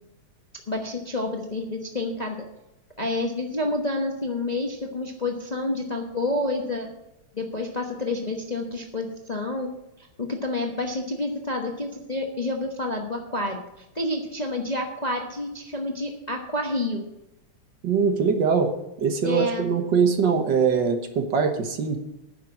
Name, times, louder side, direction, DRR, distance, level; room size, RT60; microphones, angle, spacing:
voice 1, 0.7-2.4 3.0-6.9 7.3-17.0 19.2-19.6, left 2 dB, 25° left, 1 dB, 1.0 m, -29 dB
voice 2, 17.8-18.7 19.0-22.0, right 6 dB, 60° right, 5 dB, 1.8 m, -22 dB
9.8 x 6.8 x 8.4 m, 0.91 s
omnidirectional pair, 2.3 m